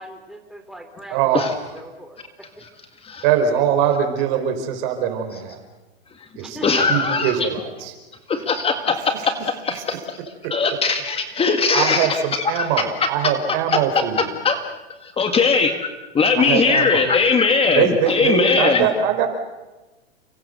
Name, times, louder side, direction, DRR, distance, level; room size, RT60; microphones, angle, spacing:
voice 1, 0.0-2.2 6.4-6.9, right 1 dB, ahead, 4 dB, 3.5 m, -39 dB
voice 2, 1.1-1.5 3.2-5.6 6.4-6.6 6.9-7.9 9.1-9.3 9.8-9.9 11.7-14.2 16.3-17.1 17.7-19.3, right 8 dB, 50° right, 6 dB, 5.3 m, -22 dB
voice 3, 6.6-7.5 8.3-9.1 9.6-10.2 10.5-12.2 12.5-12.6 13.0-13.1 13.7-13.8 14.2-14.6 15.0-15.9 16.1-18.9, left 4 dB, 20° left, 6 dB, 2.0 m, -20 dB
29.5 x 24.5 x 6.9 m, 1.2 s
hypercardioid pair, 125°, 32 cm